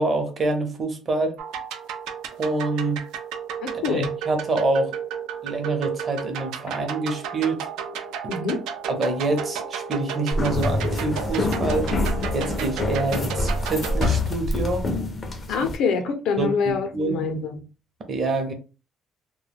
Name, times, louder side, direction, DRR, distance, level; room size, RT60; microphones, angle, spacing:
voice 1, 0.0-1.3 2.4-3.0 3.9-4.9 5.4-7.6 8.9-11.9 12.3-14.9 15.6-15.7 16.4-17.2 18.1-18.5, right 2 dB, 30° right, 0.6 m, -26 dB
sound 1, 1.4-14.1, right 7 dB, 90° right, 0.4 m, -32 dB
voice 2, 3.6-4.1 8.3-8.6 15.5-17.6, left 5 dB, 70° left, 0.6 m, -25 dB
sound 2, 10.3-15.8, left 2 dB, 25° left, 0.4 m, -26 dB
2.2 x 2.1 x 3.4 m
cardioid pair, 155°, 0 cm